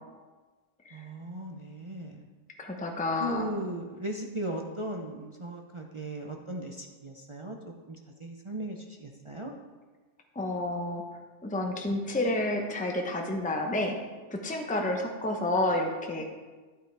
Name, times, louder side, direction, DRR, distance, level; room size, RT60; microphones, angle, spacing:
voice 1, 0.9-2.3 3.2-9.5, right 1 dB, 30° right, 1 dB, 0.7 m, -37 dB
voice 2, 2.6-3.4 10.3-11.0 11.4-14.0 14.3-16.2, left 2 dB, 5° left, 2 dB, 0.8 m, -30 dB
12.0 x 8.6 x 3.4 m, 1.3 s
omnidirectional pair, 1.2 m